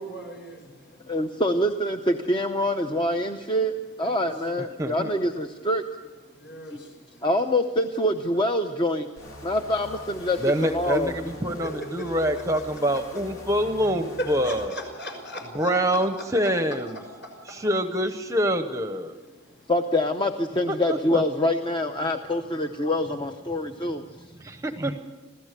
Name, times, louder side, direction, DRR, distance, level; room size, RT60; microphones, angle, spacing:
voice 1, 0.0-1.2 4.0-4.3 6.3-7.3 11.6-12.6 13.4-13.5 14.2-17.7 19.2-19.7, right 1 dB, 50° left, 2 dB, 5.6 m, -39 dB
voice 2, 1.1-3.7 4.0-5.8 7.2-9.1 9.4-11.1 19.7-24.0, left 1 dB, 20° left, 6 dB, 0.7 m, -25 dB
voice 3, 4.8-5.1 10.4-14.7 15.5-16.9 17.5-19.1 20.7-21.2 24.4-24.9, equal, 15° right, 7 dB, 0.8 m, -25 dB
sound 1, 9.2-14.7, equal, 75° left, 2.8 m, -42 dB
26.0 x 16.0 x 6.7 m, 1.3 s
head